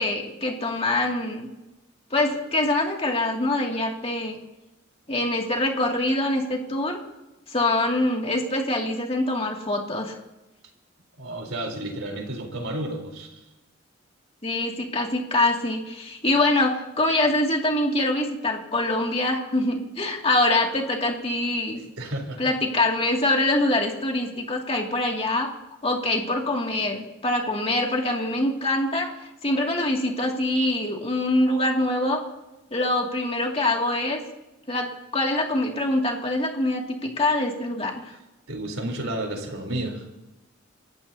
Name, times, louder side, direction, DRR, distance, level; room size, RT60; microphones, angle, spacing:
voice 1, 0.0-1.5 2.1-4.4 5.1-7.0 7.5-10.2 14.4-21.8 22.4-25.5 25.8-29.1 29.4-32.2 32.7-34.2 34.7-38.2, left 2 dB, 30° left, 1 dB, 2.4 m, -24 dB
voice 2, 11.2-13.4 22.0-22.5 38.5-40.0, right 1 dB, 85° right, 2 dB, 3.9 m, -31 dB
29.0 x 15.0 x 2.8 m, 1.0 s
head